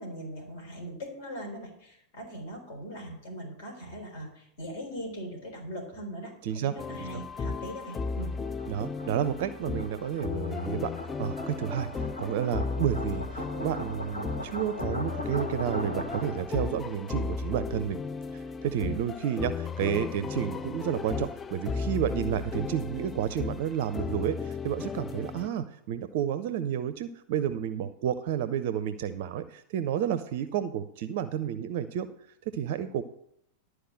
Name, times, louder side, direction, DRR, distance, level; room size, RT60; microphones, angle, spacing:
voice 1, 0.0-8.3, equal, 50° left, 2 dB, 3.8 m, -40 dB
voice 2, 6.4-6.7 7.0-7.1 8.7-10.9 11.2-11.9 12.2-18.0 18.3-32.1 32.5-33.0, right 9 dB, 50° right, 13 dB, 0.5 m, -31 dB
sound 1, 6.6-16.6, left 1 dB, 80° left, 1.5 m, -40 dB
sound 2, 6.8-25.5, left 4 dB, 20° left, 0.4 m, -35 dB
12.0 x 4.8 x 7.4 m, 0.74 s
figure-of-eight pair, 90°, 0 cm